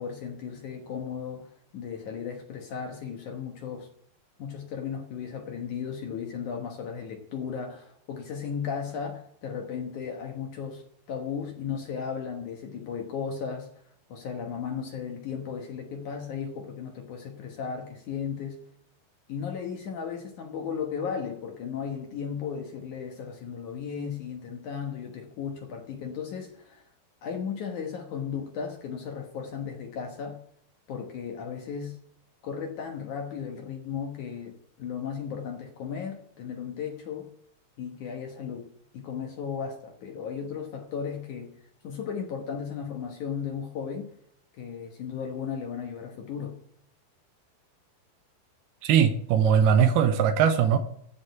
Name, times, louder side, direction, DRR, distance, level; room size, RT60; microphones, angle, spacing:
voice 1, 0.0-3.9 4.4-10.8 11.1-13.7 14.1-18.6 19.3-26.8 27.2-30.4 30.9-32.0 32.4-37.3 37.8-38.7 38.9-41.5 41.8-44.1 44.6-46.6, left 7 dB, 60° left, 2 dB, 2.2 m, -35 dB
voice 2, 48.8-50.8, right 8 dB, 80° right, 9 dB, 2.7 m, -20 dB
14.0 x 5.2 x 8.0 m, 0.68 s
omnidirectional pair, 4.8 m